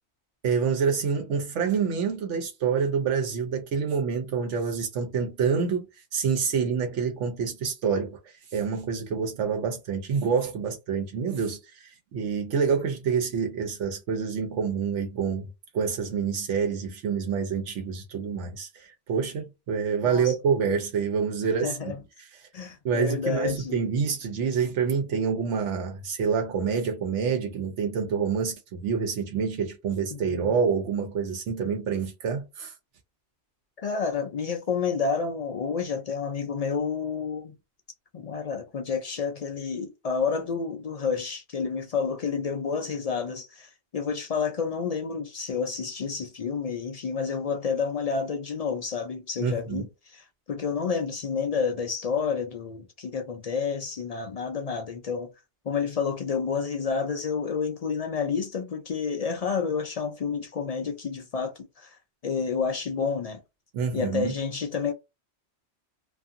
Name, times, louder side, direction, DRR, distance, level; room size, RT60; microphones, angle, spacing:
voice 1, 0.4-5.9 6.1-15.5 15.7-21.9 22.8-32.7 49.4-49.9 63.7-64.3, right 6 dB, 80° right, 1.0 m, -27 dB
voice 2, 20.0-20.3 21.6-22.0 22.5-23.8 30.1-30.5 33.8-37.5 38.1-55.3 55.6-63.4 63.9-64.9, left 5 dB, 65° left, 0.3 m, -30 dB
2.6 x 2.5 x 2.4 m
omnidirectional pair, 1.2 m